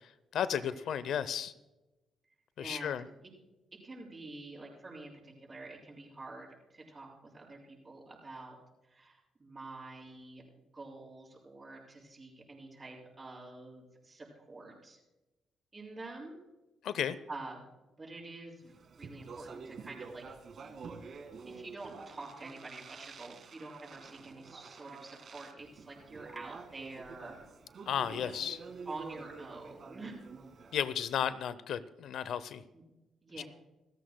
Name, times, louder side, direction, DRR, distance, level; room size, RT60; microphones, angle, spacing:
voice 1, 0.3-1.5 2.6-3.0 16.8-17.2 27.9-28.6 30.7-32.6 33.4-33.5, left 9 dB, 75° left, 15 dB, 0.6 m, -33 dB
voice 2, 2.6-3.0 3.7-8.6 8.9-10.4 10.7-15.0 15.7-16.4 16.9-17.6 18.0-20.2 21.5-27.4 28.1-28.5 28.8-30.2 32.7-32.8 33.2-33.4, right 2 dB, 25° right, -2 dB, 6.0 m, -47 dB
Speech, 18.7-31.1, right 4 dB, 55° right, 1.9 m, -49 dB
28.0 x 14.0 x 2.2 m, 1.0 s
cardioid pair, 95°, 0 cm